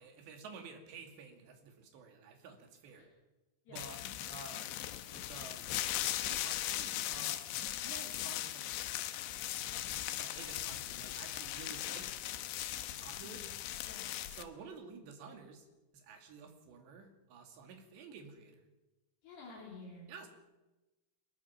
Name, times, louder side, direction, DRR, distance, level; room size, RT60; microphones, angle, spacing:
voice 1, 0.0-3.1 3.7-4.0 4.3-4.7 5.1-9.1 10.2-12.1 12.9-13.4 14.3-15.7 15.9-18.6 20.1-20.3, right 5 dB, 65° right, 4 dB, 4.5 m, -52 dB
sound 1, 3.8-14.4, left 13 dB, 75° left, 3.1 m, -39 dB
voice 2, 9.7-10.1 13.2-13.5 13.8-14.2 19.2-20.1, left 3 dB, 55° left, -2 dB, 4.8 m, -52 dB
23.5 x 20.5 x 5.9 m, 1.1 s
omnidirectional pair, 5.7 m